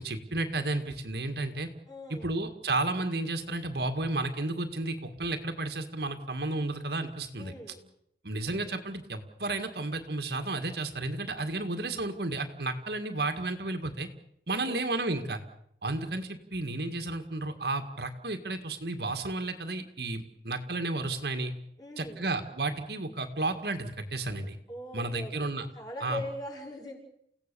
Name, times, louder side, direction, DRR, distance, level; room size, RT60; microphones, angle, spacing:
voice 1, 0.0-1.7 2.1-7.5 8.2-14.1 14.5-15.4 15.8-21.5 22.0-24.6 24.9-25.7 26.0-26.2, right 2 dB, 60° right, 6 dB, 2.0 m, -32 dB
voice 2, 1.9-2.3 7.4-7.8 14.5-14.8 21.8-22.3 24.7-25.5 25.7-27.0, left 1 dB, 20° left, 0 dB, 6.3 m, -41 dB
29.5 x 17.0 x 7.0 m, 0.74 s
head